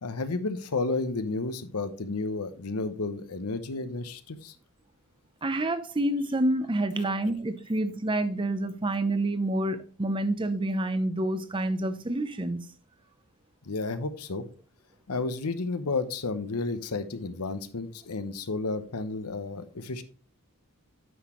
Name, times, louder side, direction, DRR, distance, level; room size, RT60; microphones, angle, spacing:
voice 1, 0.0-4.5 13.6-14.5 15.1-20.0, left 3 dB, 90° left, 0.9 m, -32 dB
voice 2, 5.4-12.6, right 1 dB, 20° right, 0.6 m, -28 dB
9.4 x 6.1 x 3.1 m
head